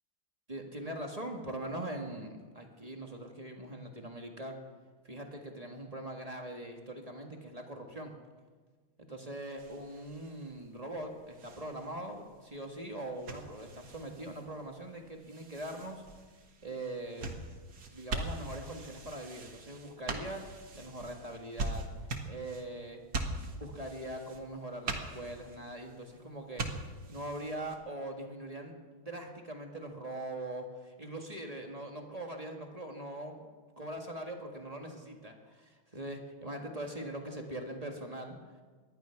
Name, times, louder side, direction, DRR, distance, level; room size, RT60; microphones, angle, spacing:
voice 1, 0.5-4.6 5.0-8.1 9.0-16.0 16.6-17.3 17.9-21.8 22.2-23.0 23.5-26.6 27.1-33.5 33.8-38.4, right 1 dB, 20° right, 2 dB, 1.6 m, -42 dB
sound 1, 9.6-27.8, right 2 dB, 50° right, 2.0 m, -43 dB
19.5 x 12.5 x 5.9 m, 1.4 s
omnidirectional pair, 2.2 m